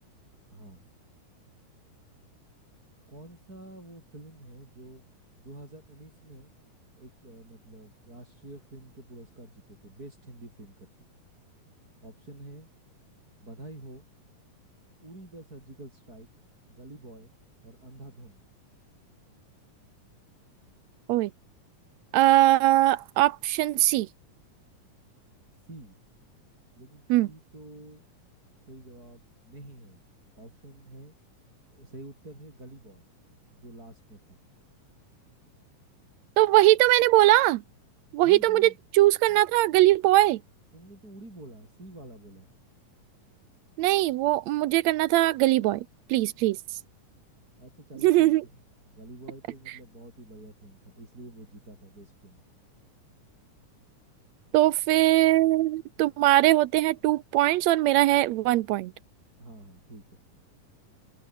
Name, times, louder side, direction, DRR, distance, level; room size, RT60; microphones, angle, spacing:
voice 1, 0.5-0.9 3.1-5.0 5.4-6.5 7.0-10.9 12.0-12.7 13.4-14.1 15.0-16.3 16.7-17.3 17.6-18.4 25.7-26.0 26.8-28.1 28.7-30.1 30.3-31.1 31.7-33.1 33.5-34.4 38.2-38.8 39.3-39.4 40.7-42.5 47.6-48.6 48.9-52.4 59.4-60.2, right 1 dB, 25° right, 7.5 m, -48 dB
voice 2, 22.1-24.1 27.1-27.3 36.4-37.6 38.1-40.4 43.8-46.6 48.0-48.4 54.5-58.9, right 16 dB, 80° right, 1.6 m, -21 dB
omnidirectional pair, 3.8 m